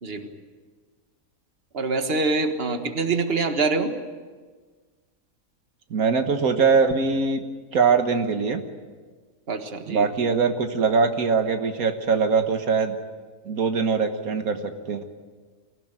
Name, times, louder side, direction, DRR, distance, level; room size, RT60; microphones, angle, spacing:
voice 1, 1.7-3.9 9.5-10.1, right 3 dB, 45° right, 6 dB, 1.8 m, -25 dB
voice 2, 5.9-7.4 7.7-8.6 9.9-13.0 13.5-15.0, right 5 dB, 85° right, 6 dB, 1.9 m, -22 dB
24.0 x 16.0 x 9.0 m, 1.5 s
omnidirectional pair, 1.5 m